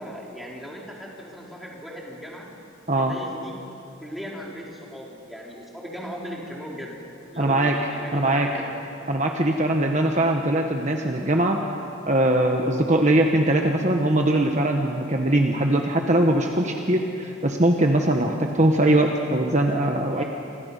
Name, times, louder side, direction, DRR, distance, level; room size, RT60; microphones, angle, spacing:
voice 1, 0.0-2.5 3.0-3.5 4.0-7.0 7.3-8.7 20.1-20.2, equal, ahead, -4 dB, 3.8 m, -38 dB
voice 2, 7.4-7.8 8.1-8.5 9.1-11.6 12.1-20.2, right 1 dB, 35° right, 2 dB, 1.3 m, -21 dB
29.5 x 25.5 x 5.6 m, 2.8 s
head